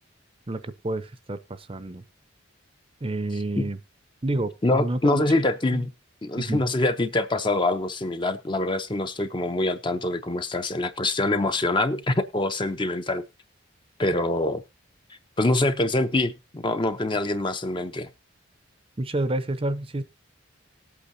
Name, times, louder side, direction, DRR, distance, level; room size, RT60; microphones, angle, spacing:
voice 1, 0.5-2.0 3.0-3.8 4.2-5.3 5.7-5.8 6.4-6.6 19.0-20.0, right 2 dB, 25° right, 0.6 m, -29 dB
voice 2, 4.6-5.9 6.2-13.2 14.0-14.6 15.4-18.1, left 2 dB, 25° left, 0.6 m, -25 dB
19.0 x 8.4 x 2.7 m
head